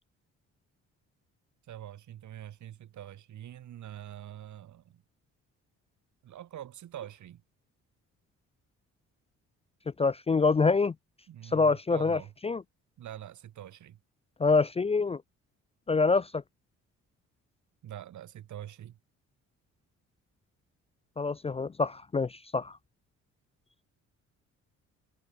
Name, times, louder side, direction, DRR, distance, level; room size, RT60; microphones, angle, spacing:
voice 1, 1.7-5.0 6.2-7.4 11.3-12.3 13.0-14.0 17.8-19.0, right 11 dB, 70° right, 6.1 m, -45 dB
voice 2, 10.0-10.9 11.5-12.6 14.4-15.2 15.9-16.4 21.2-22.8, left 4 dB, 20° left, 0.4 m, -26 dB
cardioid pair, 90°, 30 cm